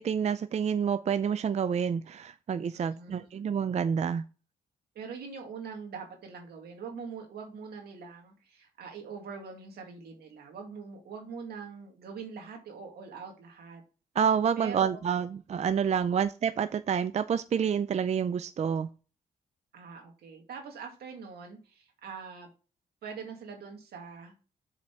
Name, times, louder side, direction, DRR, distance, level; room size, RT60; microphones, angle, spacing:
voice 1, 0.0-4.2 14.2-18.9, right 7 dB, 45° right, 12 dB, 0.4 m, -28 dB
voice 2, 2.7-3.1 5.0-13.8 14.6-15.0 16.1-16.2 19.7-22.5 23.0-24.3, right 5 dB, 85° right, 3 dB, 2.0 m, -43 dB
7.3 x 4.0 x 4.5 m, 0.35 s
cardioid pair, 70°, 16 cm